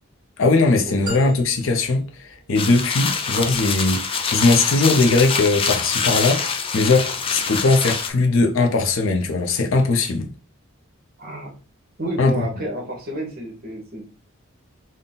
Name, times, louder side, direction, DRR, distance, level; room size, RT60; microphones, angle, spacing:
voice 1, 0.4-6.4 6.7-10.3 12.2-12.5, left 3 dB, 70° left, 0.6 m, -19 dB
sound 1, 1.1-3.1, right 3 dB, 20° right, 1.2 m, -37 dB
sound 2, 2.6-8.1, left 5 dB, 25° left, 0.4 m, -25 dB
voice 2, 11.2-11.5 12.0-14.0, right 1 dB, 45° right, 1.2 m, -30 dB
3.9 x 2.2 x 3.9 m
head